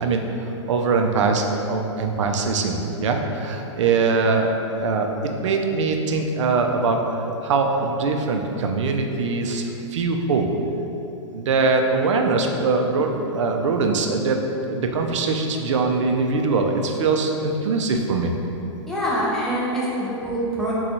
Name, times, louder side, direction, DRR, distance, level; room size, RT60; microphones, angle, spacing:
voice 1, 0.0-4.5 4.8-5.1 5.4-10.5 11.3-14.4 14.7-18.3, right 4 dB, 75° right, 3 dB, 0.4 m, -22 dB
voice 2, 18.9-20.7, equal, ahead, -9 dB, 0.5 m, -25 dB
3.9 x 2.3 x 2.9 m, 3.0 s
hypercardioid pair, 150°, 16 cm